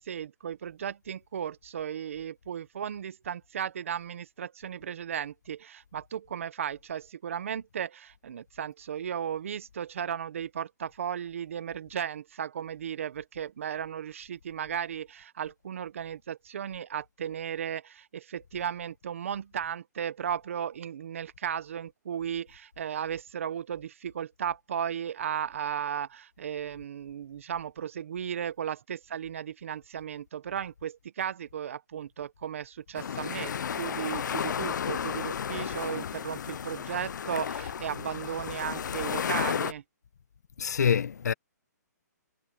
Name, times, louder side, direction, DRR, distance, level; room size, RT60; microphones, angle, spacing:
voice 1, 0.0-39.8, right 8 dB, 45° right, 0.8 m, -35 dB
sound 1, 33.0-39.7, left 8 dB, 85° left, 0.4 m, -33 dB
voice 2, 40.6-41.3, left 7 dB, 65° left, 0.9 m, -25 dB
hypercardioid pair, 175°, 10 cm